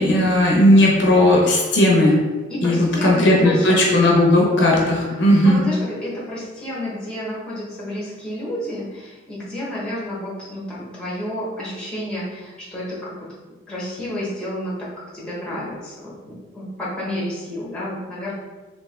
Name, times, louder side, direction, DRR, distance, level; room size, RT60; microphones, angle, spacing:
voice 1, 0.0-2.2 2.6-5.6, left 1 dB, 60° left, -2 dB, 0.7 m, -16 dB
voice 2, 2.5-3.8 5.1-13.1 13.7-14.9 15.1-18.3, left 1 dB, 5° left, -7 dB, 1.0 m, -30 dB
3.4 x 2.8 x 3.3 m, 1.2 s
head